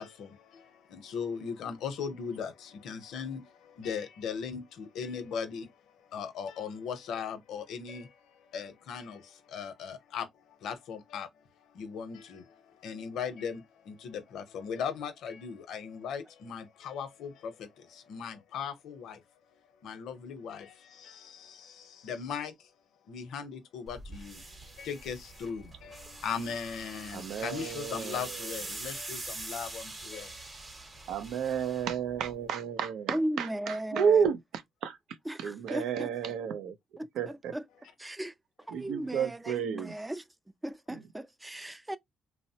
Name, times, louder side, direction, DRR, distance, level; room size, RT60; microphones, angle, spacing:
voice 1, 0.0-19.2 19.8-22.7 23.0-30.8, left 6 dB, 80° left, 0.7 m, -39 dB
sound 1, 23.9-32.5, right 2 dB, 30° right, 0.8 m, -44 dB
voice 2, 27.1-28.7 31.1-36.8 37.1-37.6 38.7-39.9 40.9-41.1, right 7 dB, 80° right, 0.5 m, -32 dB
voice 3, 33.1-34.1 35.3-35.4 35.7-36.1 37.5-37.6 38.0-38.3 38.7-40.2 40.6-42.0, right 1 dB, 10° right, 0.3 m, -35 dB
3.0 x 2.0 x 2.7 m
cardioid pair, 90°, 0 cm